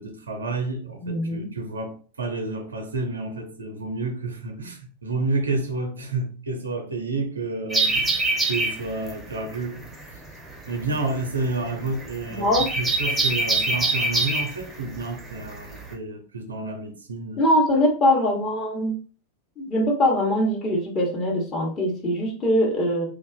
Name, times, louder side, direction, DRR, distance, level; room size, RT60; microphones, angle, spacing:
voice 1, 0.0-8.2 8.5-9.9 10.7-17.4, right 3 dB, 70° right, 0.5 m, -30 dB
voice 2, 1.0-1.5 12.3-12.7 17.4-18.9 19.6-23.0, left 1 dB, 25° left, 0.9 m, -22 dB
sound 1, 7.7-15.9, right 2 dB, 10° right, 0.6 m, -25 dB
2.4 x 2.2 x 2.3 m
figure-of-eight pair, 90°, 0 cm